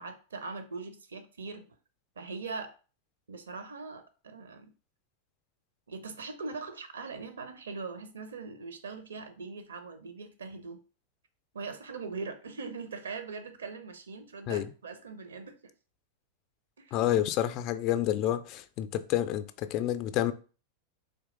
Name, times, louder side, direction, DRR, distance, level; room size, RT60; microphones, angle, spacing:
voice 1, 0.0-1.6 2.2-2.7 3.3-4.7 5.9-10.8 11.5-15.5 16.8-17.0, right 4 dB, 70° right, 0.7 m, -41 dB
voice 2, 16.9-20.3, left 12 dB, 40° left, 0.4 m, -29 dB
3.9 x 3.0 x 3.8 m
figure-of-eight pair, 90°, 0 cm